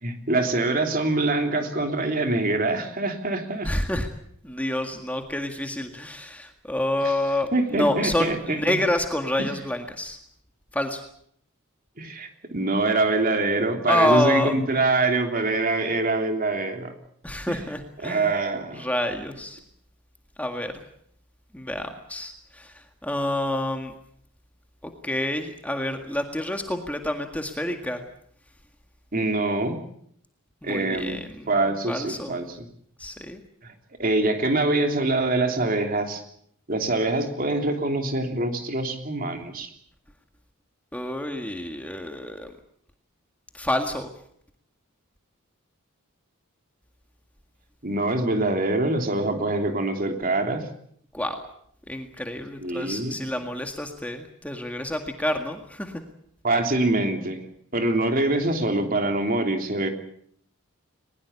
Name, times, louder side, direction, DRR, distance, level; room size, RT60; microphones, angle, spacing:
voice 1, 0.0-3.7 7.0-7.1 7.5-8.8 12.0-16.9 17.5-17.6 18.0-18.9 29.1-29.8 30.6-31.2 31.5-32.6 33.6-33.7 34.0-36.2 36.7-39.7 47.8-50.7 52.6-53.2 56.4-57.4 57.7-59.9, right 2 dB, 40° right, 5 dB, 3.3 m, -24 dB
voice 2, 3.6-4.1 4.4-10.2 10.7-11.0 13.9-14.5 17.2-18.4 18.7-19.6 20.4-20.8 21.5-23.9 24.8-28.0 30.6-31.5 31.9-32.3 33.0-33.4 40.9-42.5 43.5-44.1 51.1-51.4 51.9-56.0, left 1 dB, 5° left, 5 dB, 1.9 m, -28 dB
21.5 x 21.0 x 8.3 m, 0.67 s
head